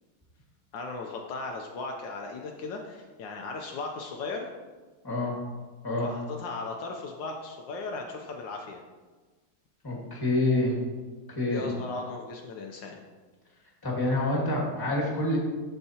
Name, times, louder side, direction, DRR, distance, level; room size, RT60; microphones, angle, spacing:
voice 1, 0.7-4.5 6.0-8.8 11.5-13.0, left 3 dB, 75° left, 1 dB, 1.3 m, -37 dB
voice 2, 5.0-5.3 5.8-6.1 9.8-10.8 11.3-11.7 13.8-15.4, left 2 dB, 10° left, -3 dB, 1.5 m, -27 dB
13.0 x 4.6 x 2.8 m, 1.3 s
omnidirectional pair, 2.2 m